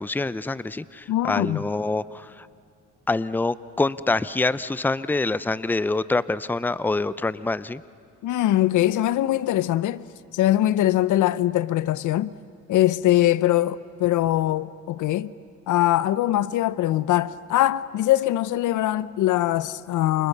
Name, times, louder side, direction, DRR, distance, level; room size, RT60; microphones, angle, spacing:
voice 1, 0.0-2.5 3.1-7.8, left 3 dB, 5° left, 0.6 m, -26 dB
voice 2, 1.1-1.6 8.2-10.0 10.3-12.3 12.7-15.3 15.7-20.3, left 14 dB, 80° left, 0.7 m, -22 dB
28.5 x 28.0 x 6.7 m
cardioid pair, 90°, 30 cm